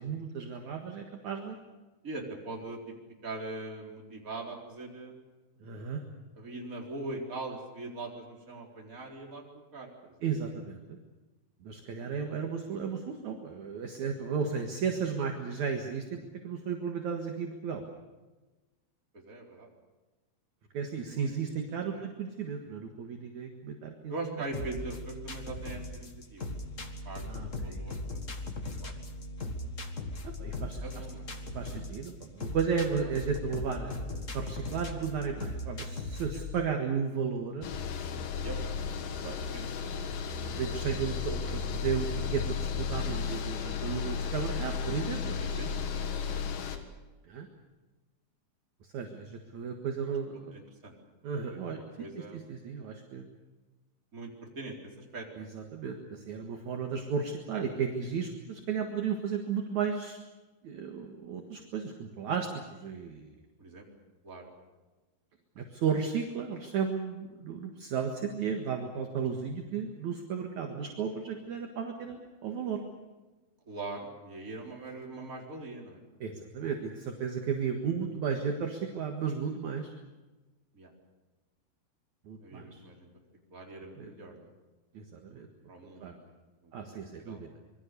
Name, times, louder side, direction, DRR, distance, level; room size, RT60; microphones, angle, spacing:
voice 1, 0.0-1.6 5.6-6.0 10.2-11.0 11.6-17.8 20.7-24.4 27.2-27.8 30.2-31.0 31.5-37.7 39.2-39.4 40.5-45.4 47.3-47.5 48.8-50.5 51.2-51.8 52.2-53.3 55.4-60.2 60.6-63.4 65.6-72.8 76.2-79.9 82.3-82.8 84.0-84.1 84.9-85.5 86.0-86.1 86.7-87.5, right 6 dB, 55° right, 3 dB, 2.7 m, -34 dB
voice 2, 2.0-2.9 3.2-5.2 6.4-10.2 14.2-14.3 19.1-19.7 21.1-21.3 21.8-22.1 24.1-26.5 27.0-28.2 28.8-28.9 30.8-31.3 36.3-36.4 38.4-38.6 39.2-39.9 45.4-46.3 50.5-50.9 51.5-52.4 54.1-55.5 57.5-57.6 63.6-63.9 64.2-64.5 73.7-76.0 80.7-80.9 82.4-83.1 83.5-84.5 85.7-86.3 86.6-87.4, right 2 dB, 20° right, 0 dB, 4.1 m, -42 dB
sound 1, 24.5-36.5, left 2 dB, 50° left, 0.9 m, -38 dB
sound 2, 37.6-46.8, left 6 dB, 65° left, 3.3 m, -34 dB
26.0 x 23.0 x 6.9 m, 1.2 s
omnidirectional pair, 4.5 m